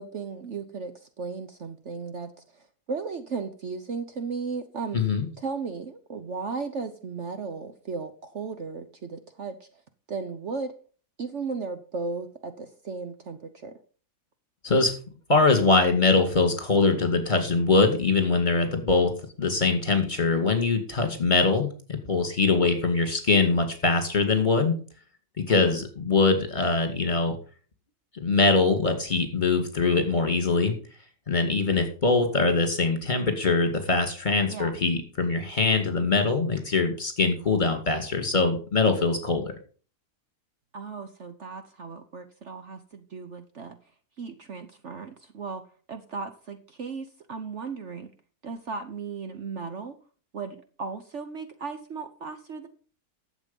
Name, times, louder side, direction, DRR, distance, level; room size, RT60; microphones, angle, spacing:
voice 1, 0.0-5.0 5.4-9.7 10.1-10.7 11.2-13.7 25.5-25.8 34.5-34.8 40.7-43.8 44.2-45.6 45.9-48.1 48.4-50.0 50.3-52.7, right 4 dB, 55° right, 9 dB, 1.1 m, -36 dB
voice 2, 4.9-5.3 14.6-14.9 15.3-24.7 25.4-27.4 28.1-30.7 31.3-39.5, left 3 dB, 30° left, 5 dB, 2.4 m, -23 dB
11.5 x 7.6 x 5.3 m, 0.39 s
omnidirectional pair, 1.6 m